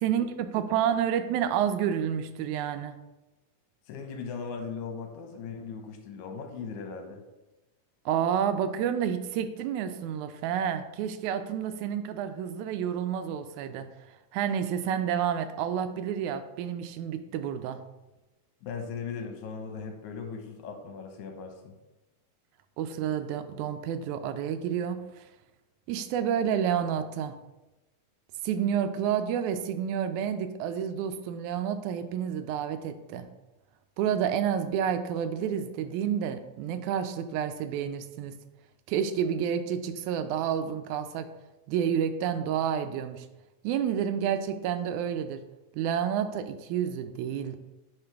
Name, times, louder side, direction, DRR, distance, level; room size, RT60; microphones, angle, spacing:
voice 1, 0.0-3.0 8.1-13.9 14.3-17.8 22.8-25.2 25.9-27.4 28.4-33.3 34.0-38.4 38.9-41.3 41.7-43.3 43.6-45.4 45.7-47.6, right 8 dB, 85° right, 9 dB, 2.0 m, -29 dB
voice 2, 3.9-7.2 18.6-21.7, left 5 dB, 85° left, 4 dB, 2.3 m, -38 dB
9.6 x 3.8 x 3.4 m, 1.0 s
omnidirectional pair, 3.3 m